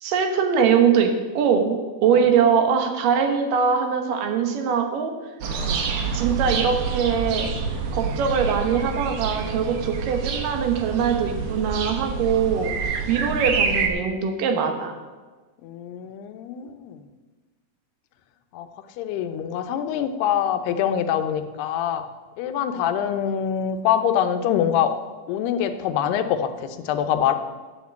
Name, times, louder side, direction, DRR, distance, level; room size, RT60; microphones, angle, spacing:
voice 1, 0.0-5.1 6.1-7.5 7.9-12.7 13.1-14.9, right 6 dB, 70° right, 5 dB, 2.4 m, -22 dB
sound 1, 5.4-13.9, right 5 dB, 90° right, 1.4 m, -27 dB
voice 2, 15.6-17.0 18.5-18.7 19.0-22.0 22.4-24.9 25.3-27.4, left 9 dB, 90° left, 9 dB, 2.8 m, -25 dB
9.4 x 7.3 x 8.1 m, 1.3 s
omnidirectional pair, 4.5 m